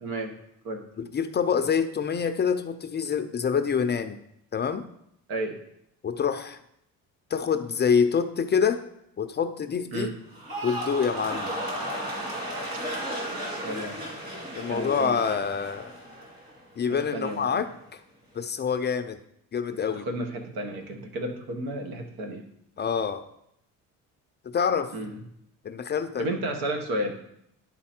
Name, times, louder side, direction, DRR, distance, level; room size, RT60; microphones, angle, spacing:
voice 1, 0.0-0.3 0.6-0.9 5.3-5.6 9.9-10.2 13.6-14.0 14.7-15.2 17.1-17.7 19.7-22.4 24.9-25.2 26.2-27.1, right 1 dB, 75° right, 4 dB, 1.4 m, -32 dB
voice 2, 1.0-4.2 4.5-4.8 6.0-6.6 7.3-8.8 9.2-10.1 10.6-11.6 14.6-15.9 16.8-18.0 18.3-19.2 19.5-20.1 22.8-23.3 24.4-24.9 25.6-26.3, left 6 dB, 30° left, 9 dB, 0.5 m, -26 dB
sound 1, 10.3-16.6 16.9-17.4, right 1 dB, 25° right, 2.5 m, -34 dB
10.5 x 4.0 x 4.4 m, 0.76 s
cardioid pair, 105°, 36 cm